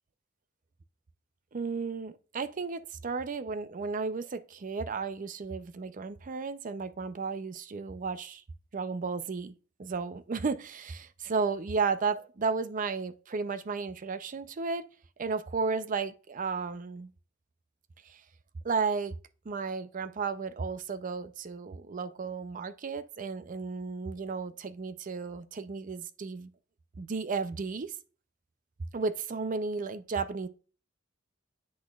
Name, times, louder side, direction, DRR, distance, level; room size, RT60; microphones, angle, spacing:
voice 1, 1.5-8.4 8.7-9.5 9.8-14.9 15.2-17.1 18.0-18.2 18.6-19.2 19.5-26.5 27.0-27.9 28.9-30.5, right 4 dB, 40° right, 0.5 m, -33 dB
8.5 x 5.9 x 2.3 m
head